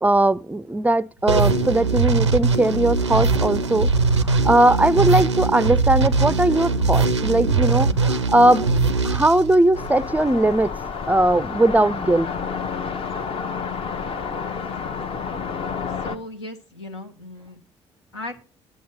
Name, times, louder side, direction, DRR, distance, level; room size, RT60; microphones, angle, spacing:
voice 1, 0.0-3.9 4.2-8.7 9.0-10.7 11.1-12.3, right 1 dB, 10° right, 0.4 m, -19 dB
sound 1, 1.3-10.1, right 4 dB, 85° right, 0.5 m, -21 dB
sound 2, 9.7-16.2, left 5 dB, 40° left, 0.9 m, -30 dB
voice 2, 16.0-17.6 18.1-18.4, left 1 dB, 80° left, 1.1 m, -36 dB
9.3 x 6.9 x 6.3 m
figure-of-eight pair, 45°, 14 cm